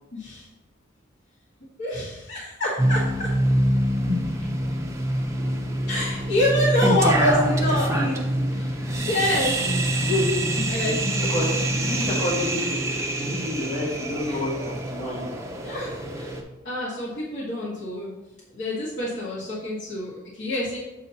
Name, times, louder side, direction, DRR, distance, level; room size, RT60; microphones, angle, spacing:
voice 1, 0.1-0.5 1.8-3.3 5.9-9.6 10.7-11.4 14.3-14.4 15.6-16.4 16.6-18.1 18.5-20.8, left 1 dB, 65° left, -7 dB, 1.5 m, -27 dB
sound 1, 2.8-16.4, right 1 dB, 15° right, 0.5 m, -25 dB
voice 2, 9.6-12.8 13.1-15.4, left 1 dB, 25° left, -9 dB, 2.3 m, -29 dB
7.1 x 2.8 x 5.5 m, 1.0 s
head